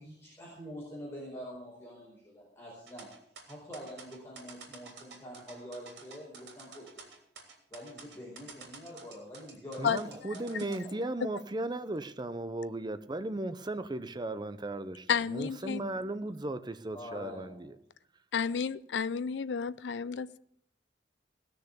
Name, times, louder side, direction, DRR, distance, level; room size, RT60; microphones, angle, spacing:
voice 1, 0.0-3.1 3.4-7.1 7.7-10.0 10.3-10.8 16.9-17.7, equal, 15° left, 4.7 m, -45 dB
sound 1, 2.9-10.8, right 4 dB, 70° right, 3.3 m, -50 dB
voice 2, 9.8-17.8, right 2 dB, 25° right, 0.7 m, -36 dB
voice 3, 15.1-15.8 18.3-20.4, left 6 dB, 80° left, 0.5 m, -31 dB
17.5 x 6.7 x 8.3 m
head